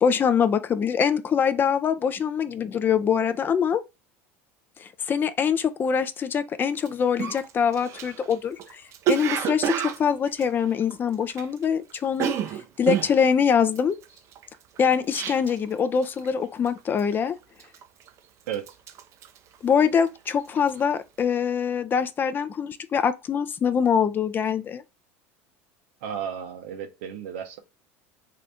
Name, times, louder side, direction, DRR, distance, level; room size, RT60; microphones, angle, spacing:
voice 1, 0.0-3.8 4.8-8.6 9.1-12.3 12.8-14.0 14.8-17.4 19.6-24.8, left 7 dB, 30° left, 0.4 m, -24 dB
Cough, 6.8-6.9 7.2-11.6 11.9-15.7 16.0-16.4 16.6-17.1 17.6-18.2 18.5-20.2 20.5-20.8, right 10 dB, 45° right, 0.4 m, -30 dB
voice 2, 26.0-27.6, right 8 dB, 80° right, 0.8 m, -34 dB
2.7 x 2.5 x 3.3 m
supercardioid pair, 100°, 7 cm